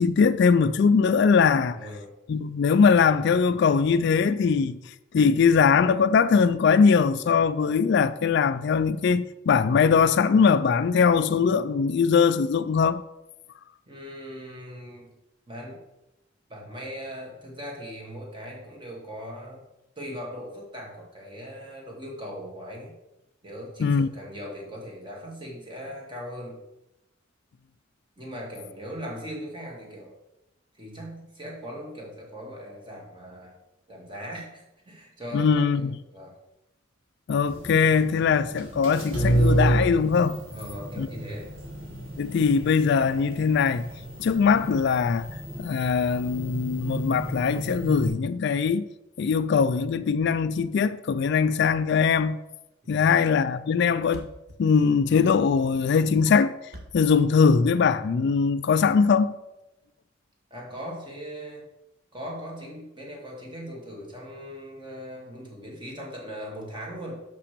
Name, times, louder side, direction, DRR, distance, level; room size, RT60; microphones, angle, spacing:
voice 1, 0.0-1.8 2.3-4.8 5.1-13.0 23.8-24.1 35.3-35.9 37.3-40.4 41.0-41.1 42.2-43.9 44.2-45.3 45.6-48.9 49.2-52.4 52.9-54.3 54.6-56.5 56.9-59.3, left 5 dB, 60° left, 0.3 m, -21 dB
voice 2, 1.7-2.1 13.9-15.1 15.5-15.8 16.5-19.6 20.0-22.9 23.4-26.6 28.2-30.1 30.7-33.6 33.9-36.3 40.5-41.5 52.8-53.2 60.5-61.7 62.1-67.2, equal, 25° right, 2.1 m, -39 dB
sound 1, 37.4-48.1, right 1 dB, 85° right, 2.1 m, -30 dB
Thump thud, 52.7-52.9 53.2-53.3 53.5-53.6 53.8-53.9 54.1-58.1, equal, 50° right, 1.4 m, -47 dB
6.2 x 5.7 x 6.7 m
head